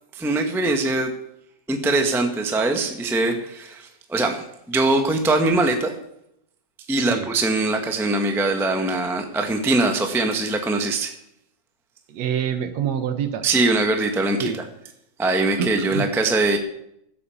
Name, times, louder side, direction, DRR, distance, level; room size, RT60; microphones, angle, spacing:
voice 1, 0.1-1.1 1.7-5.9 6.9-11.1 13.4-14.6 15.2-16.6, right 2 dB, ahead, 4 dB, 0.7 m, -22 dB
voice 2, 7.0-7.3 12.1-13.4 14.4-14.6 15.6-16.1, right 8 dB, 70° right, 9 dB, 2.3 m, -26 dB
15.0 x 8.6 x 7.2 m, 0.78 s
omnidirectional pair, 3.3 m